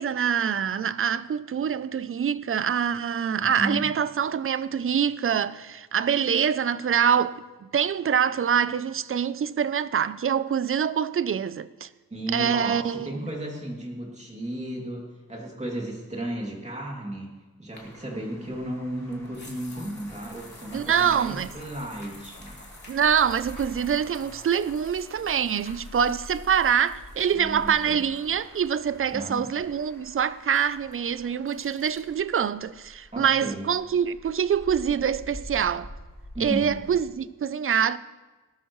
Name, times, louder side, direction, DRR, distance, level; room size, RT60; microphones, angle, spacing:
voice 1, 0.0-11.9 12.3-13.1 20.7-21.5 22.9-35.9 36.4-38.0, right 8 dB, 40° right, 0.4 m, -25 dB
voice 2, 3.4-3.9 12.1-17.3 17.6-22.6 27.3-28.0 29.1-29.5 33.1-33.7 36.3-36.8, right 1 dB, 20° right, 2.6 m, -34 dB
sound 1, 17.7-32.0, left 2 dB, 30° left, 2.8 m, -48 dB
sound 2, 17.7-37.1, equal, 10° left, 3.2 m, -48 dB
19.0 x 12.5 x 3.1 m
wide cardioid pair, 130°, 34 cm